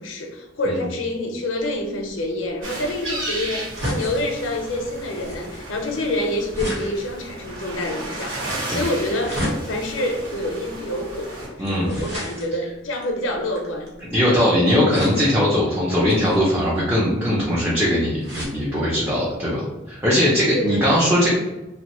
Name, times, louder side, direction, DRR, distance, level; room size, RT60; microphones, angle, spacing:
voice 1, 0.0-13.9 14.3-14.4 20.5-21.1, left 1 dB, 80° left, 3 dB, 0.5 m, -27 dB
sound 1, 1.6-14.2 14.9-15.5 16.0-18.6 19.1-19.2 19.4-19.5, equal, 60° right, 1.2 m, -34 dB
sound 2, 2.6-11.5, right 1 dB, 90° right, 1.4 m, -34 dB
voice 2, 14.1-21.3, equal, 10° right, -8 dB, 0.5 m, -20 dB
3.0 x 2.1 x 2.9 m, 1.1 s
head